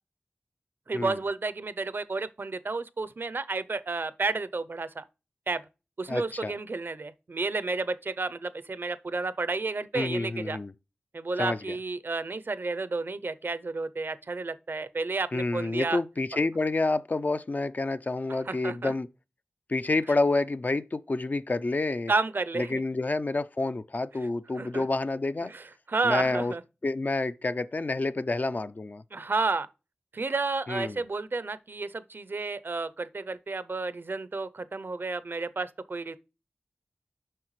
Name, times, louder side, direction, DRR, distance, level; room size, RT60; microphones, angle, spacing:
voice 1, 0.9-5.0 5.5-5.6 6.0-10.6 11.1-16.0 18.5-18.9 22.1-22.8 24.6-24.9 25.4-26.6 29.1-29.7 30.1-36.2, right 3 dB, 65° right, 0.6 m, -31 dB
voice 2, 6.1-6.5 9.9-10.7 11.4-11.6 15.3-19.1 19.7-22.1 22.5-25.5 26.0-26.5 26.8-29.0 30.7-31.0, left 2 dB, 45° left, 0.4 m, -28 dB
7.6 x 5.7 x 3.1 m
wide cardioid pair, 65°, 4 cm